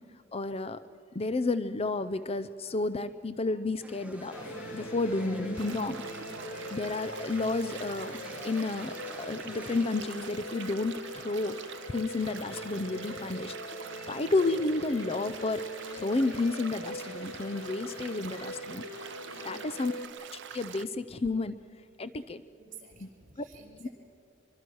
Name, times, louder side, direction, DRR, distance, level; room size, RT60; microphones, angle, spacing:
voice 1, 0.3-0.8 1.1-4.3 4.7-6.0 6.7-11.6 11.9-13.5 13.8-15.6 16.0-18.8 19.4-19.9 20.5-21.6 22.0-22.4 23.0-23.1 23.4-23.5 23.8-23.9, left 3 dB, 30° left, 13 dB, 0.5 m, -31 dB
sound 1, 3.8-10.0, right 1 dB, 5° right, 1.3 m, -46 dB
sound 2, 4.3-20.1, left 1 dB, 85° left, 2.5 m, -42 dB
sound 3, 5.6-20.8, right 8 dB, 60° right, 0.7 m, -45 dB
voice 2, 6.1-6.9 19.3-19.9 22.6-23.9, right 3 dB, 40° right, -1 dB, 4.9 m, -52 dB
24.5 x 24.0 x 6.3 m, 2.4 s
head